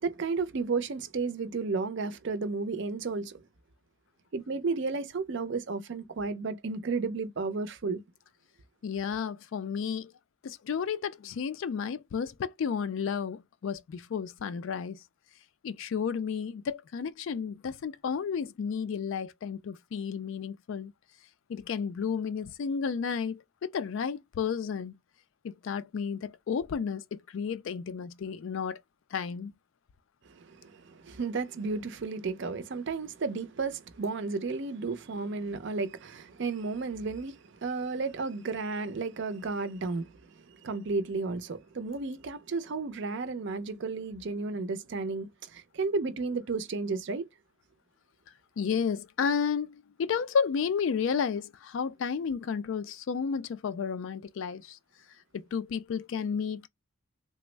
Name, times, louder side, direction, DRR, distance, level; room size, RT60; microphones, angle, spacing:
voice 1, 0.0-3.4 4.3-8.0 30.3-47.3, right 4 dB, 55° right, 0.5 m, -33 dB
voice 2, 8.8-10.1 10.4-15.0 15.6-20.9 21.5-25.0 25.4-28.8 29.1-29.5 48.6-54.8 55.3-56.7, left 6 dB, 60° left, 0.3 m, -32 dB
3.3 x 2.0 x 3.1 m
head